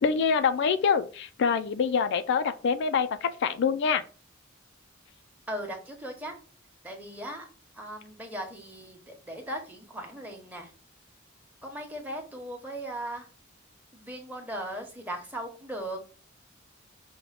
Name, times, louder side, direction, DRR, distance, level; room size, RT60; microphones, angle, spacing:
voice 1, 0.0-4.0, left 6 dB, 60° left, 0.3 m, -25 dB
voice 2, 5.5-6.3 6.8-7.5 7.8-10.7 11.6-13.3 13.9-16.0, right 1 dB, 10° right, 1.0 m, -38 dB
5.4 x 2.1 x 4.1 m
head